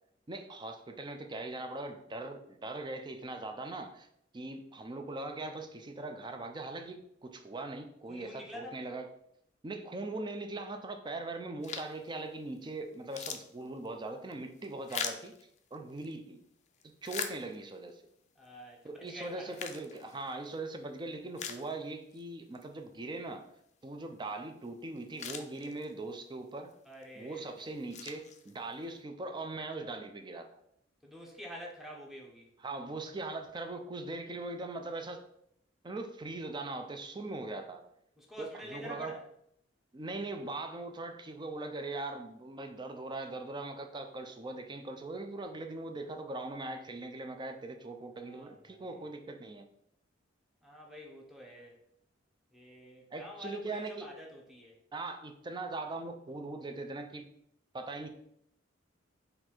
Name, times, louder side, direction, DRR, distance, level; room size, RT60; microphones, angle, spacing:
voice 1, 0.3-4.1 4.3-9.1 9.6-15.3 15.7-16.4 17.0-18.0 18.8-23.5 23.8-26.8 27.2-30.6 32.6-35.3 35.8-37.8 38.4-39.2 39.9-49.7 53.1-54.1 54.9-57.3 57.7-58.1, right 2 dB, 25° right, 6 dB, 0.4 m, -40 dB
voice 2, 8.1-8.8 18.4-19.6 26.8-27.5 31.0-32.5 38.2-39.2 48.1-49.1 50.6-51.8 52.5-54.8, left 1 dB, ahead, -1 dB, 0.8 m, -48 dB
sound 1, 11.6-12.1 12.6-12.7 12.9-16.1 16.7-17.9 18.4-18.5 19.2-20.6 21.0-21.1 21.4-22.2 22.6-22.7 24.6-24.7 25.0-26.1 26.7-27.0 27.6-28.8, left 7 dB, 40° left, 0.4 m, -42 dB
4.1 x 2.6 x 4.3 m, 0.72 s
head